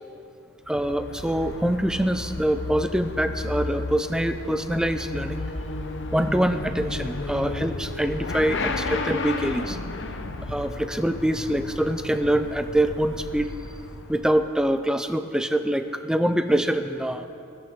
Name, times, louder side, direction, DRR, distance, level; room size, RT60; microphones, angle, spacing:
Motorcycle / Accelerating revving vroom, 0.6-14.5, left 3 dB, 60° left, 0.8 m, -33 dB
voice 1, 0.7-5.4 6.1-9.8 10.5-13.5 14.1-17.3, right 1 dB, 5° right, 9 dB, 0.4 m, -24 dB
16.0 x 13.5 x 3.6 m, 2.6 s
head